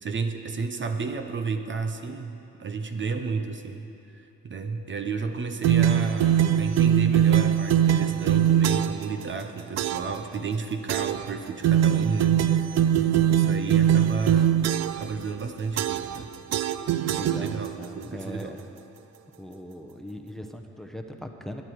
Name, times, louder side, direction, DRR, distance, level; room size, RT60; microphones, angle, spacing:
voice 1, 0.0-3.9 4.1-12.9 13.3-14.7 15.0-16.3 17.3-18.6, right 4 dB, 40° right, 6 dB, 0.9 m, -32 dB
sound 1, 5.6-9.1 9.8-10.2 10.9-11.3 11.6-15.1 15.8-16.2 16.5-17.8, right 10 dB, 60° right, 0.5 m, -22 dB
voice 2, 17.1-18.6 19.4-21.6, left 1 dB, ahead, 4 dB, 0.9 m, -40 dB
22.0 x 8.9 x 4.8 m, 2.8 s
cardioid pair, 90°, 30 cm